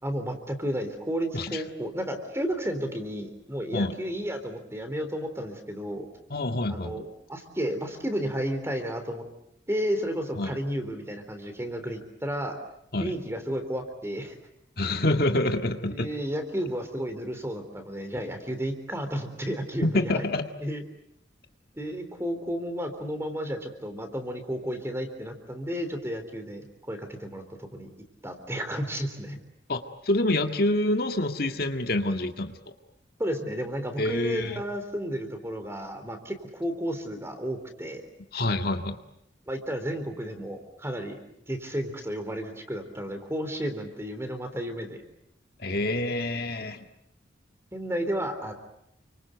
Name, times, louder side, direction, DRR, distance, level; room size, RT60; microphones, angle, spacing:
voice 1, 0.0-6.1 6.7-9.2 9.7-12.6 13.0-14.4 15.9-20.3 20.6-20.8 21.7-27.9 28.2-29.4 33.2-38.0 39.5-41.2 41.5-45.0 47.7-48.5, equal, 15° right, 7 dB, 3.7 m, -32 dB
voice 2, 6.3-7.0 10.4-10.6 12.9-13.1 14.8-16.1 19.9-20.5 29.7-32.5 34.0-34.6 38.3-39.0 45.6-46.8, left 1 dB, 55° left, 5 dB, 1.9 m, -27 dB
29.5 x 25.0 x 8.1 m, 0.76 s
head